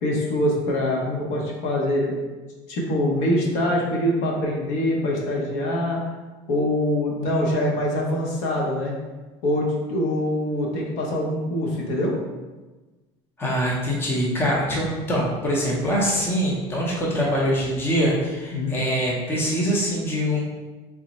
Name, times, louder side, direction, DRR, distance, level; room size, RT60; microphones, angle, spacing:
voice 1, 0.0-2.2 2.7-6.0 6.5-8.9 9.4-12.2 18.5-18.8, left 1 dB, 65° left, -2 dB, 0.8 m, -24 dB
voice 2, 13.4-20.4, equal, 15° left, -4 dB, 0.7 m, -23 dB
3.5 x 2.0 x 4.0 m, 1.2 s
cardioid pair, 160°, 13 cm